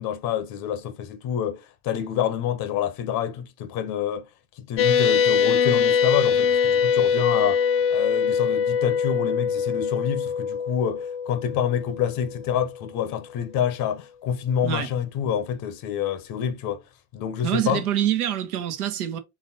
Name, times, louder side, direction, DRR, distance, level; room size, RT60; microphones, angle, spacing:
voice 1, 0.0-4.3 4.7-7.6 7.9-16.8 17.1-17.8, left 9 dB, 50° left, 0.9 m, -27 dB
sound 1, 4.8-12.8, left 7 dB, 30° left, 0.6 m, -23 dB
voice 2, 17.4-19.2, right 11 dB, 70° right, 1.0 m, -25 dB
4.1 x 3.3 x 2.7 m
figure-of-eight pair, 65°, 46 cm